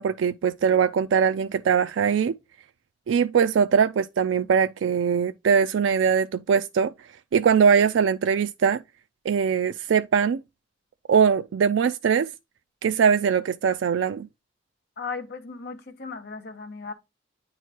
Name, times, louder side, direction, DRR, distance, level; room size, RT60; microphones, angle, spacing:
voice 1, 0.0-2.4 3.1-6.9 7.3-8.8 9.3-10.4 11.1-12.3 12.8-14.3, right 6 dB, 80° right, 0.3 m, -21 dB
voice 2, 15.0-16.9, left 4 dB, 60° left, 1.4 m, -36 dB
9.1 x 3.1 x 4.4 m
head